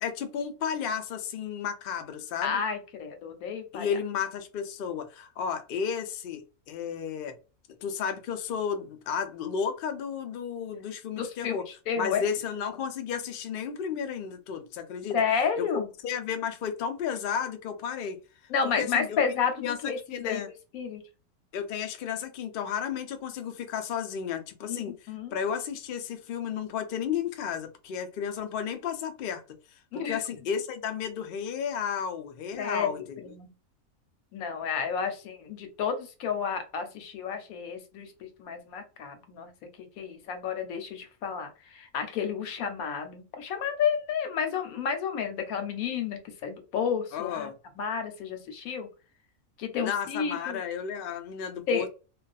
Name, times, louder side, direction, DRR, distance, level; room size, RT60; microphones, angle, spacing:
voice 1, 0.0-2.6 3.7-7.3 7.8-11.7 12.0-15.2 15.6-18.2 18.8-19.2 19.6-20.5 21.5-24.9 25.3-29.4 29.7-33.3 47.1-47.5 49.8-51.9, left 7 dB, 65° left, 0.5 m, -33 dB
voice 2, 2.4-3.9 11.2-12.2 15.1-15.9 18.5-21.0 24.7-25.3 29.9-30.2 32.6-33.5 34.3-39.5 39.8-47.5 47.8-48.9 49.6-50.6 51.7-51.8, left 6 dB, 85° left, 1.1 m, -31 dB
2.4 x 2.3 x 2.3 m
omnidirectional pair, 1.5 m